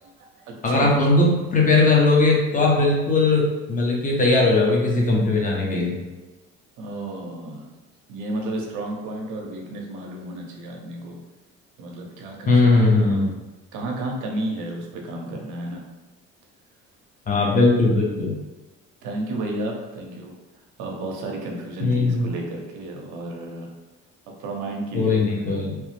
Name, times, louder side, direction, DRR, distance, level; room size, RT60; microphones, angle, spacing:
voice 1, 0.0-1.5 6.8-7.7 8.1-11.2 11.8-13.3 13.7-15.8 19.0-20.3 20.8-23.7 24.3-25.5, right 1 dB, 80° right, 1 dB, 0.7 m, -32 dB
voice 2, 0.6-6.0 12.5-13.3 17.3-18.3 21.8-22.3 24.9-25.8, left 3 dB, 25° left, -2 dB, 0.8 m, -19 dB
3.1 x 2.0 x 3.2 m, 1.1 s
cardioid pair, 100°, 30 cm